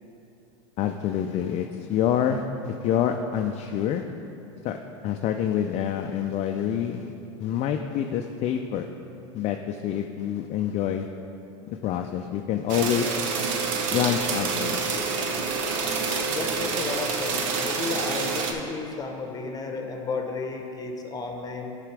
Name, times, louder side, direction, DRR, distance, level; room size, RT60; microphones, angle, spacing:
voice 1, 0.8-4.0 4.6-4.8 5.0-7.1 7.4-8.9 9.3-11.1 11.7-13.1 13.9-15.0 16.0-16.2, left 9 dB, 40° left, 4 dB, 0.4 m, -27 dB
sound 1, 12.7-18.5, right 5 dB, 70° right, 0.9 m, -27 dB
voice 2, 16.3-21.8, left 4 dB, 20° left, 4 dB, 1.0 m, -33 dB
10.5 x 4.9 x 4.8 m, 2.9 s
hypercardioid pair, 95°, 17 cm